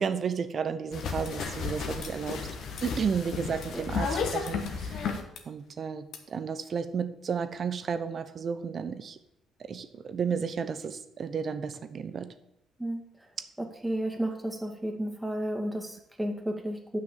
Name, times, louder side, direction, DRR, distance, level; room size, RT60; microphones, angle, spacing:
voice 1, 0.0-2.5 2.8-5.1 5.5-9.2 9.6-12.3, right 6 dB, 45° right, 11 dB, 0.8 m, -32 dB
sound 1, 0.9-5.4 6.1-6.2, left 5 dB, 60° left, 1.3 m, -33 dB
voice 2, 13.6-17.0, right 1 dB, 10° right, 2 dB, 2.1 m, -32 dB
7.6 x 6.1 x 7.4 m, 0.81 s
hypercardioid pair, 45°, 0 cm